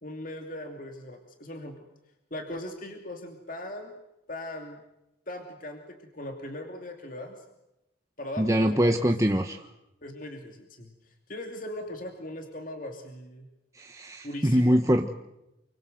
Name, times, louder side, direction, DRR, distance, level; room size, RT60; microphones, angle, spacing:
voice 1, 0.0-1.9 2.3-4.0 4.3-4.8 5.3-7.4 8.2-9.0 10.0-10.9 11.3-13.5 14.2-14.8, left 1 dB, 45° left, 4 dB, 2.7 m, -39 dB
voice 2, 8.4-9.7 13.8-15.2, equal, 15° right, 4 dB, 1.1 m, -24 dB
29.0 x 24.0 x 7.9 m, 0.92 s
head